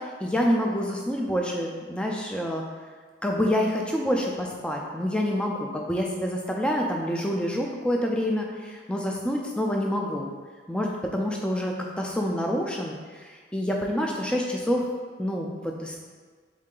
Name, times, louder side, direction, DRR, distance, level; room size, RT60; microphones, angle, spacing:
voice 1, 0.0-2.6 3.2-10.3 10.7-14.8 15.2-16.0, equal, 5° left, 0 dB, 0.4 m, -27 dB
3.7 x 3.2 x 3.8 m, 1.5 s
head